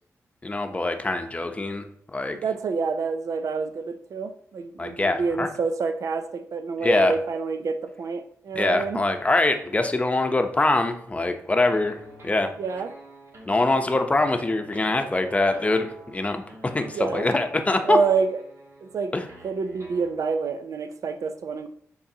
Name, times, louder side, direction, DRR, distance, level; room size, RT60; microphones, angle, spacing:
voice 1, 0.4-2.4 4.8-5.5 6.8-7.1 8.5-12.0 12.2-12.5 13.5-18.0 19.1-19.3, left 2 dB, 25° left, 6 dB, 0.7 m, -24 dB
voice 2, 2.4-9.0 12.6-12.9 16.8-17.3 17.8-18.3 18.8-19.1 19.4-21.7, right 5 dB, 70° right, 9 dB, 0.5 m, -27 dB
sound 1, 11.6-20.1, right 1 dB, 50° right, 1.4 m, -47 dB
8.5 x 3.9 x 2.8 m, 0.68 s
cardioid pair, 75°, 6 cm